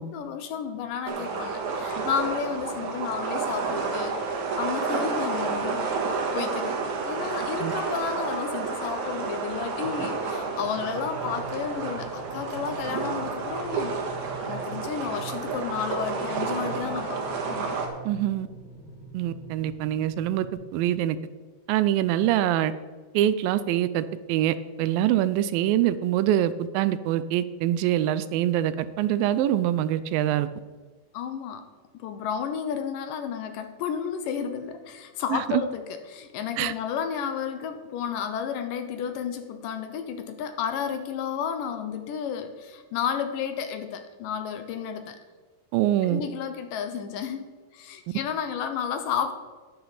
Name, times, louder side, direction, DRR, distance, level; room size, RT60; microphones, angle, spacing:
voice 1, 0.0-5.9 6.3-17.8 31.1-31.6 31.9-45.2 46.0-49.3, left 7 dB, 75° left, 8 dB, 2.3 m, -32 dB
sound 1, 1.1-17.9, right 4 dB, 65° right, 2.6 m, -30 dB
sound 2, 10.6-20.5, right 4 dB, 45° left, 2.8 m, -44 dB
voice 2, 18.1-18.5 19.1-20.5 20.7-21.2 21.7-22.7 23.1-30.5 35.3-35.6 36.6-36.7 45.7-46.2, right 12 dB, 85° right, 14 dB, 2.2 m, -24 dB
11.0 x 10.5 x 4.1 m, 1.4 s
omnidirectional pair, 4.2 m